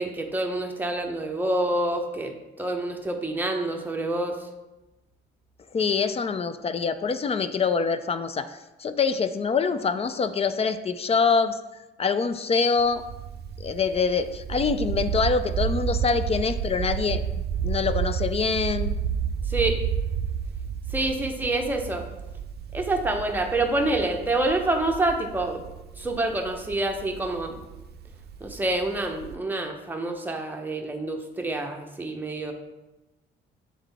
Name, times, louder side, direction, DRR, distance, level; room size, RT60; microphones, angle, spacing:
voice 1, 0.0-4.4 19.5-19.8 20.9-22.1 22.7-25.6 26.0-27.6 28.4-32.5, right 2 dB, 10° right, 2 dB, 0.8 m, -27 dB
voice 2, 5.7-11.6 12.0-13.0 13.6-17.2 17.6-19.0, left 5 dB, 30° left, 12 dB, 0.4 m, -25 dB
sound 1, 12.8-29.3, right 7 dB, 55° right, 0.5 m, -31 dB
7.3 x 3.8 x 3.4 m, 1.0 s
cardioid pair, 90°, 20 cm